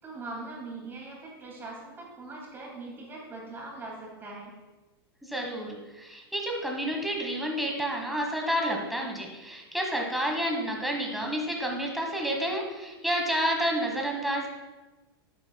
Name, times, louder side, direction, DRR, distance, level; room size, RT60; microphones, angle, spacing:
voice 1, 0.0-4.5, right 2 dB, 15° right, -2 dB, 2.3 m, -41 dB
voice 2, 5.2-14.5, equal, ahead, 0 dB, 1.3 m, -30 dB
10.0 x 8.3 x 2.3 m, 1.2 s
supercardioid pair, 145°, 13 cm